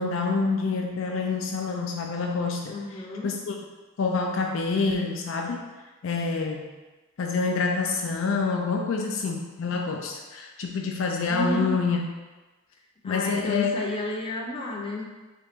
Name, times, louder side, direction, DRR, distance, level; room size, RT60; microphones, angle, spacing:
voice 1, 0.0-3.6 4.0-5.7 6.0-6.7 7.2-12.1 13.0-13.7, left 4 dB, 65° left, 1 dB, 0.4 m, -27 dB
voice 2, 2.7-3.3 11.3-11.8 13.0-15.0, left 1 dB, 25° left, -2 dB, 0.6 m, -31 dB
3.8 x 3.3 x 3.5 m, 1.2 s
head